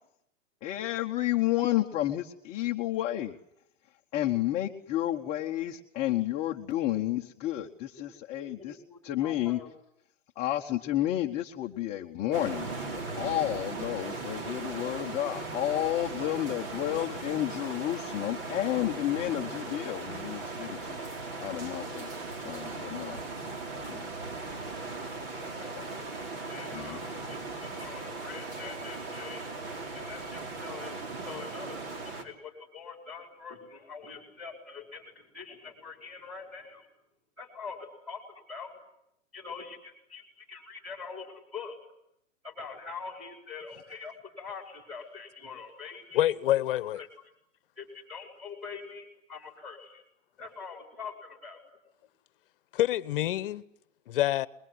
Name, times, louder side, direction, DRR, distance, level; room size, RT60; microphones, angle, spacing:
voice 1, 0.6-3.3 4.1-8.8 9.0-9.6 10.4-21.0 21.4-22.1 22.4-23.2 23.9-24.1 25.8-25.9 26.7-27.0, left 14 dB, 20° left, 1.1 m, -31 dB
voice 2, 8.4-9.7 25.4-25.8 26.5-29.4 29.9-36.9 37.4-38.7 39.3-41.8 42.4-46.2 47.0-47.1 47.8-50.0 50.4-51.6, left 5 dB, ahead, 4.9 m, -44 dB
sound 1, 12.3-32.2, right 3 dB, 45° right, 4.5 m, -38 dB
voice 3, 46.1-47.0 52.7-53.6 54.1-54.5, left 13 dB, 45° left, 1.2 m, -26 dB
28.5 x 21.5 x 9.6 m
hypercardioid pair, 155°, 38 cm